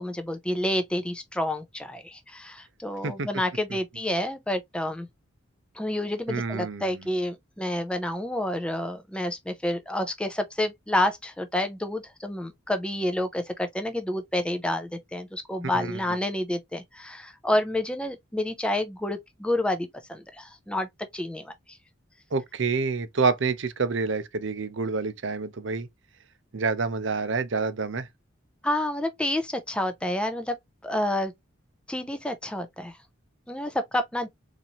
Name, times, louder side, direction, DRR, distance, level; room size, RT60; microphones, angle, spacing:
voice 1, 0.0-5.1 5.7-20.9 21.1-21.8 28.6-30.5 30.8-31.3 31.9-33.0 33.5-34.3, left 1 dB, 5° left, 0.5 m, -29 dB
voice 2, 6.3-6.9 15.7-16.0 22.3-25.9 26.5-28.1, right 4 dB, 65° right, 0.6 m, -28 dB
4.1 x 2.7 x 2.9 m
head